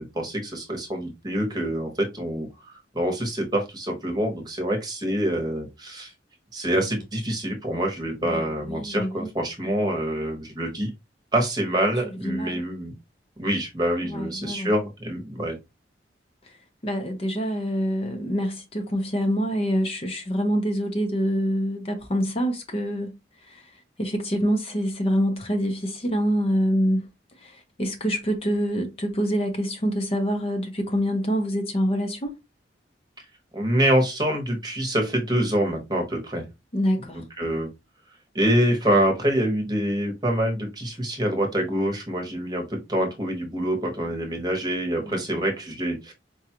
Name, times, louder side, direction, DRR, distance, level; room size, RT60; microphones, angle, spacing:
voice 1, 0.0-6.1 6.5-10.9 11.3-12.9 13.4-15.6 33.5-36.4 37.1-37.7 38.3-46.1, right 1 dB, 20° right, 0.9 m, -26 dB
voice 2, 8.2-9.3 12.2-12.6 14.0-14.7 16.4-16.6 16.8-23.1 23.4-27.1 27.4-32.3 36.7-37.2 45.0-45.2, equal, 30° left, 0.6 m, -26 dB
4.8 x 2.3 x 2.8 m
head